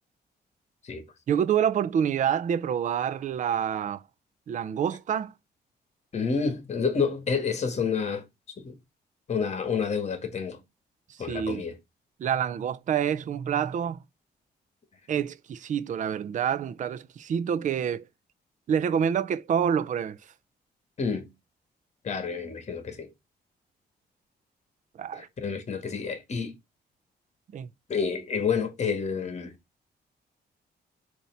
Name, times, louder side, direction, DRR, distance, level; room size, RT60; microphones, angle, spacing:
voice 1, 1.3-4.0 4.5-5.3 11.3-11.6 12.2-14.0 15.1-18.0 18.7-20.2 25.0-25.2 27.5-27.7, right 8 dB, 45° right, 0.5 m, -27 dB
voice 2, 6.1-8.3 8.6-8.8 9.3-10.6 11.2-11.8 21.0-21.3 22.0-23.1 25.1-26.5 27.9-29.5, left 5 dB, 40° left, 1.7 m, -29 dB
7.1 x 3.0 x 5.6 m
cardioid pair, 145°, 17 cm